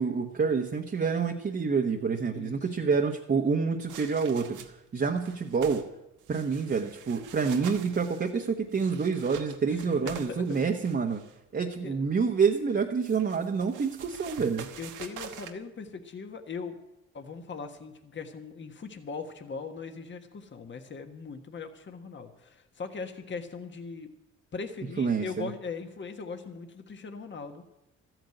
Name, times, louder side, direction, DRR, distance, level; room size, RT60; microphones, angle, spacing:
voice 1, 0.0-4.6 4.9-5.8 6.3-11.2 11.5-14.7 25.0-25.5, right 5 dB, 35° right, 1 dB, 1.2 m, -27 dB
voice 2, 2.4-2.9 9.7-10.4 11.8-12.0 14.8-16.8 17.1-24.1 24.5-27.6, left 5 dB, 40° left, 6 dB, 1.5 m, -40 dB
sound 1, 3.9-4.9 5.2-5.9 6.2-11.4 12.7-15.5, right 9 dB, 85° right, 1.2 m, -46 dB
13.5 x 9.1 x 7.9 m, 0.90 s
cardioid pair, 90°, 30 cm